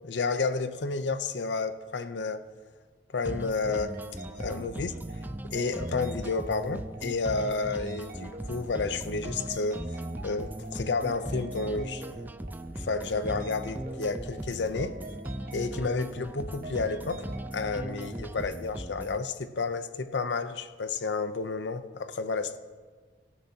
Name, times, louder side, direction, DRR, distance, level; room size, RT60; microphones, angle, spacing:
voice 1, 0.0-2.4 3.1-3.9 4.4-4.9 5.5-9.9 10.2-12.3 12.8-15.0 15.5-17.2 17.5-22.6, left 4 dB, 90° left, 0.7 m, -31 dB
sound 1, 3.3-19.3, right 1 dB, 10° right, 0.4 m, -38 dB
sound 2, 3.7-18.5, right 2 dB, 55° right, 1.3 m, -45 dB
24.0 x 12.0 x 2.8 m
head